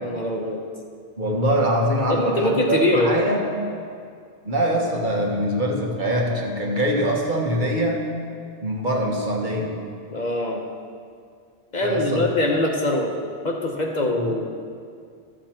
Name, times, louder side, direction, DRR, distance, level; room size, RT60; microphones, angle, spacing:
voice 1, 0.0-0.6 2.1-3.1 10.1-10.6 11.7-13.1 13.4-14.4, left 1 dB, 45° left, 0 dB, 1.0 m, -23 dB
voice 2, 1.2-3.4 4.4-8.0 8.6-9.7 11.8-12.2 14.2-14.5, right 1 dB, 50° right, -1 dB, 1.5 m, -23 dB
13.5 x 7.6 x 4.4 m, 2.2 s
omnidirectional pair, 1.1 m